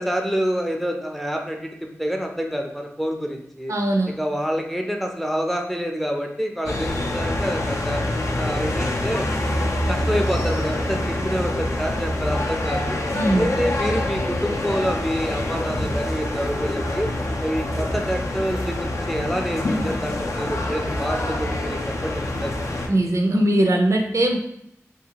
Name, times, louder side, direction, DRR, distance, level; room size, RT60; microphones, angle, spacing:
voice 1, 0.0-3.7 4.1-8.0 8.4-9.2 9.9-13.0 13.3-17.1 17.4-22.5, equal, 5° left, 2 dB, 0.4 m, -27 dB
voice 2, 3.7-4.1 13.1-13.5 22.9-24.4, right 1 dB, 70° right, 2 dB, 0.4 m, -20 dB
sound 1, 6.7-22.9, left 1 dB, 75° left, 0.4 m, -26 dB
2.6 x 2.3 x 2.8 m, 0.75 s
wide cardioid pair, 55°, 5 cm